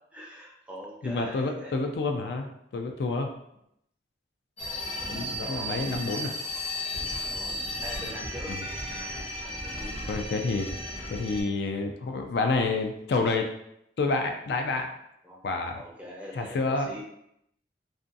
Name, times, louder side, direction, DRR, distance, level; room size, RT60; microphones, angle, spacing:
voice 1, 0.1-2.0 5.4-5.7 7.2-8.5 9.4-10.0 15.2-15.4 15.7-17.0, left 1 dB, 5° right, -3 dB, 0.4 m, -43 dB
voice 2, 1.0-3.3 5.1-6.3 8.5-8.6 10.1-10.7 11.1-13.5 14.0-14.9 15.4-15.8 16.3-17.0, left 3 dB, 65° left, 4 dB, 0.3 m, -28 dB
sound 1, 4.6-11.4, left 1 dB, 35° left, 0.8 m, -34 dB
2.5 x 2.2 x 2.5 m, 0.77 s
head